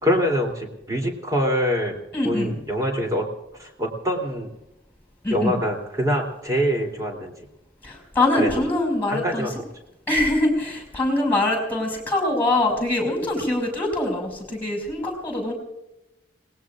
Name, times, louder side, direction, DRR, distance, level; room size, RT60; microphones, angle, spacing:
voice 1, 0.0-2.0 2.2-3.2 3.6-4.5 5.3-7.3 8.4-8.5 9.1-9.5, equal, 20° right, 1 dB, 3.1 m, -24 dB
voice 2, 2.1-2.5 5.2-5.5 7.8-9.5 10.1-15.5, left 2 dB, 10° left, 2 dB, 5.7 m, -23 dB
29.5 x 19.5 x 2.5 m, 0.89 s
head